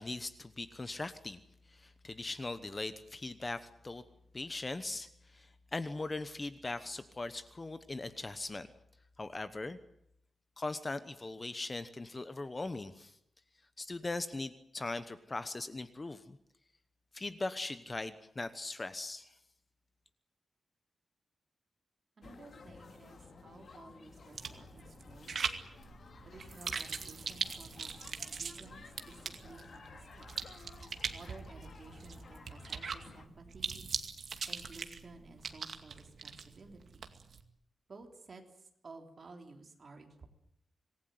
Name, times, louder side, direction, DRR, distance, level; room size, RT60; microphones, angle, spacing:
voice 1, 0.0-1.4 1.7-4.0 4.3-8.7 9.2-9.8 10.6-13.2 13.8-16.4 17.1-19.3, left 2 dB, 20° left, 12 dB, 1.0 m, -40 dB
sound 1, 22.2-33.3, left 4 dB, 45° left, 2.3 m, -54 dB
voice 2, 22.2-25.5 26.2-29.2 29.4-30.3 31.1-33.8 34.5-37.0 37.9-40.3, right 3 dB, 35° right, 4 dB, 3.6 m, -54 dB
sound 2, 24.3-37.4, right 5 dB, 50° right, 2.2 m, -42 dB
26.0 x 19.5 x 9.4 m, 0.75 s
wide cardioid pair, 170°, 0 cm